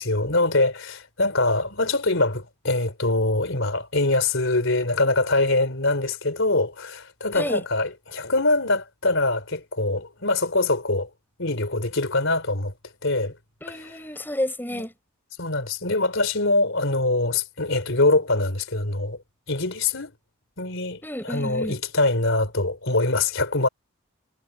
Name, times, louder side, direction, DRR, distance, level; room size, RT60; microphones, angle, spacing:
voice 1, 0.0-11.1 11.4-12.7 13.0-13.3 14.7-14.8 15.4-19.2 19.5-20.1 20.6-23.7, left 2 dB, 60° left, 4.4 m, -23 dB
voice 2, 13.6-14.9 21.0-21.7, left 1 dB, 10° left, 5.0 m, -30 dB
head